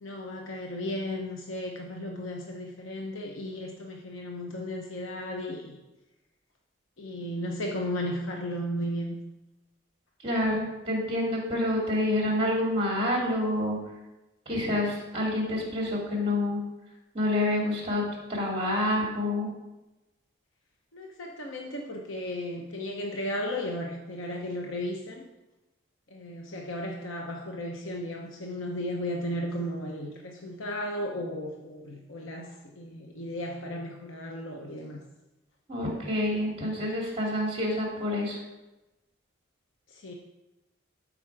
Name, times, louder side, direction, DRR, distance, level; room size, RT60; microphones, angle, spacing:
voice 1, 0.0-5.8 7.0-9.2 20.9-25.3 26.1-35.0 39.9-40.1, left 1 dB, 85° left, 1 dB, 0.9 m, -35 dB
voice 2, 10.2-13.8 14.5-16.6 17.1-18.0 18.3-19.5 35.7-38.4, left 1 dB, 30° right, -2 dB, 2.3 m, -28 dB
12.5 x 5.0 x 4.7 m, 1.0 s
head